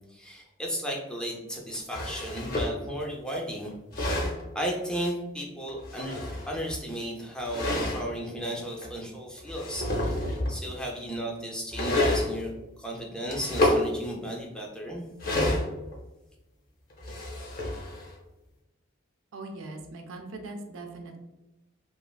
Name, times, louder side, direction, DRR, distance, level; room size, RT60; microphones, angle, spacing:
voice 1, 0.1-3.7 4.5-10.2 10.5-12.5 12.8-15.0, equal, 5° left, -1 dB, 0.4 m, -34 dB
sound 1, 1.9-2.8 3.7-4.4 5.7-6.8 7.5-8.0 8.8-8.9 9.4-10.6 11.7-12.3 13.3-13.8 15.2-16.0 16.9-18.1, left 1 dB, 45° left, 0.6 m, -28 dB
voice 2, 19.3-21.2, right 2 dB, 90° right, 3 dB, 0.5 m, -40 dB
3.1 x 2.4 x 2.2 m, 1.0 s
head